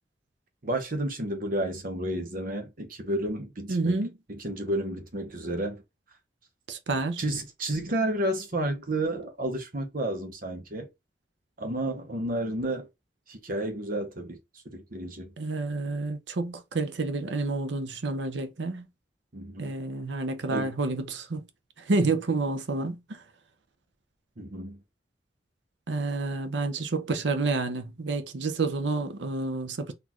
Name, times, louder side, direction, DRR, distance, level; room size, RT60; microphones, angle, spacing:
voice 1, 0.6-4.0 4.3-5.8 7.2-10.9 11.6-12.9 13.3-14.4 14.6-15.3 19.3-19.7 20.5-20.7 24.4-24.8, right 1 dB, 50° right, 1.0 m, -31 dB
voice 2, 3.7-4.1 6.7-7.2 15.4-18.9 19.6-21.4 21.9-23.2 25.9-29.9, right 3 dB, 75° right, 0.7 m, -29 dB
4.1 x 2.7 x 3.0 m
head